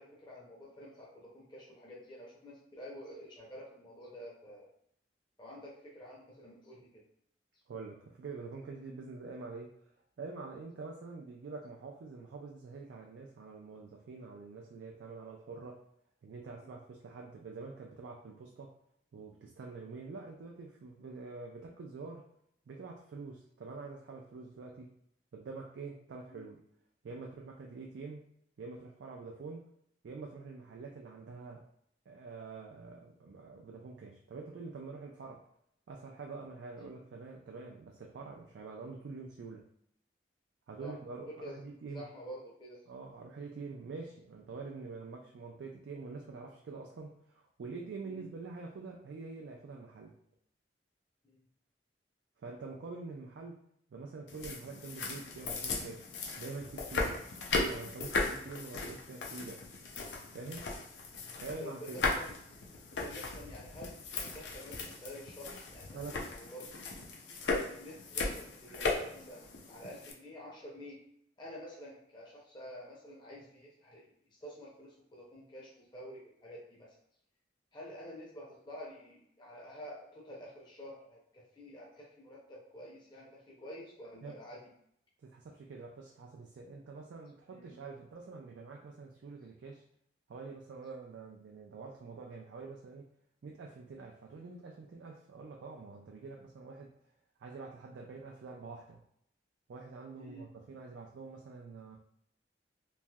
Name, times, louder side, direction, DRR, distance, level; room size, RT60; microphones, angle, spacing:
voice 1, 0.0-4.7 5.4-7.0 26.3-26.4 36.8-36.9 40.8-40.9 41.2-41.6 41.9-42.8 48.0-48.2 51.2-51.4 57.3-57.5 61.6-62.4 63.0-66.9 67.6-71.0 71.4-76.9 77.7-84.6 87.5-87.7 100.2-100.4, equal, 25° left, -4 dB, 0.6 m, -49 dB
voice 2, 7.7-9.7 10.2-15.8 16.2-18.7 19.1-22.2 22.7-24.9 25.3-26.6 27.0-28.2 28.6-29.7 30.0-31.6 32.1-35.5 35.9-39.7 40.7-42.0 42.9-50.1 52.4-53.6 53.9-56.0 56.4-57.2 57.7-59.6 60.3-60.7 61.4-62.0 65.9-66.3 84.2-84.4 85.2-89.8 90.3-93.1 93.4-96.9 97.4-99.0 99.7-102.0, right 4 dB, 80° right, 0 dB, 0.4 m, -46 dB
sound 1, 54.3-70.1, left 3 dB, 75° left, 0.5 m, -37 dB
3.1 x 2.5 x 2.3 m, 0.71 s
head